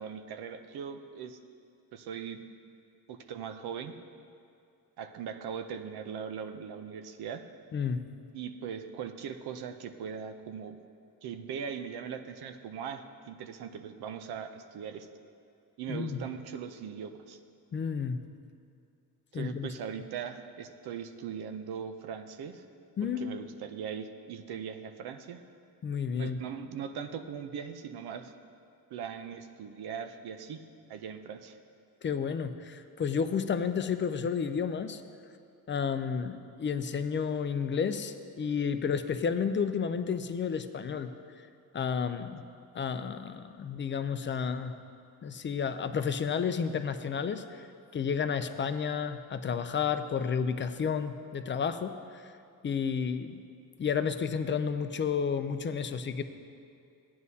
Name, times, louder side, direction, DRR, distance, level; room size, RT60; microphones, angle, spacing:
voice 1, 0.0-1.4 1.9-2.4 3.1-3.9 5.0-7.4 8.3-10.8 11.2-15.1 15.8-17.4 19.3-22.6 23.0-25.4 26.2-28.3 28.9-30.6 30.9-31.6, right 7 dB, 80° right, 8 dB, 0.7 m, -40 dB
voice 2, 7.7-8.0 15.9-16.2 17.7-18.2 19.3-19.7 23.0-23.3 25.8-26.4 32.0-35.0 35.7-41.1 41.7-42.4 42.7-44.7 45.2-47.7 47.9-52.3 52.6-53.4 53.8-56.2, left 6 dB, 30° left, 10 dB, 0.5 m, -31 dB
16.0 x 9.5 x 2.8 m, 2.5 s
cardioid pair, 125°, 37 cm